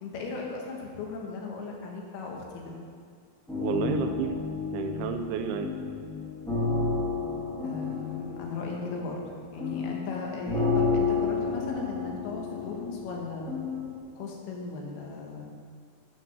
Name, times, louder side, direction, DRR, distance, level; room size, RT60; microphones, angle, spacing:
voice 1, 0.0-2.8 7.6-9.2 9.5-13.6 14.2-15.5, left 4 dB, 85° left, -1 dB, 3.4 m, -37 dB
sound 1, 3.5-14.0, left 4 dB, ahead, 0.4 m, -31 dB
voice 2, 3.6-4.3 4.7-5.7, right 7 dB, 85° right, 7 dB, 2.6 m, -30 dB
10.5 x 6.1 x 6.3 m, 2.1 s
omnidirectional pair, 4.4 m